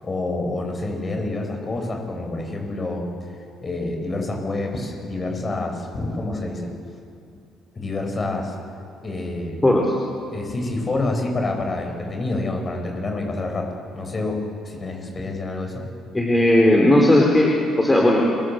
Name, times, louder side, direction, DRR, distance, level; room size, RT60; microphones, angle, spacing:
voice 1, 0.0-3.1 3.6-6.7 7.7-8.5 9.0-9.6 10.3-13.7 13.9-15.8, left 2 dB, 30° left, 3 dB, 7.2 m, -27 dB
voice 2, 16.1-17.5 17.8-18.2, left 1 dB, 15° left, -1 dB, 4.1 m, -16 dB
29.0 x 23.0 x 7.9 m, 2.4 s
cardioid pair, 85°, 0 cm